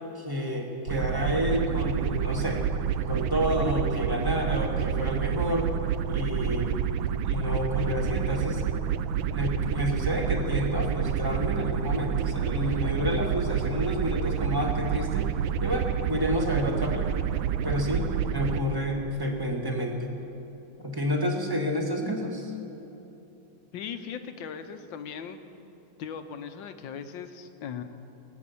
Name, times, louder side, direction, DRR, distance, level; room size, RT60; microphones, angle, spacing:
voice 1, 0.1-2.6 3.1-5.7 6.1-6.7 7.2-8.6 9.3-15.3 15.6-17.3 17.6-20.1 20.8-22.5, equal, 10° right, 1 dB, 1.4 m, -29 dB
sound 1, 0.9-18.6, right 9 dB, 75° right, 1.3 m, -29 dB
voice 2, 23.7-25.4 26.0-27.8, left 7 dB, 70° left, 8 dB, 1.5 m, -38 dB
20.5 x 9.2 x 7.0 m, 2.9 s
omnidirectional pair, 2.2 m